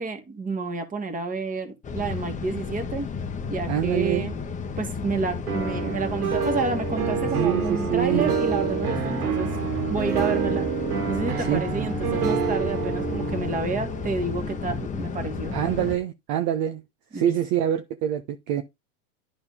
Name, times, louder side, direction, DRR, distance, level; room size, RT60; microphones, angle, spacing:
voice 1, 0.0-3.1 3.5-4.3 4.8-9.5 9.9-10.7 11.1-15.6 17.1-17.4, right 4 dB, 20° right, 1.9 m, -30 dB
sound 1, 1.8-16.0, left 5 dB, 15° left, 1.1 m, -32 dB
voice 2, 3.7-4.3 7.3-8.3 11.4-11.9 15.5-16.8 17.1-18.6, right 11 dB, 40° right, 1.0 m, -26 dB
sound 2, 5.5-15.4, right 6 dB, 85° right, 2.8 m, -28 dB
11.0 x 4.0 x 3.6 m
hypercardioid pair, 120°, 44 cm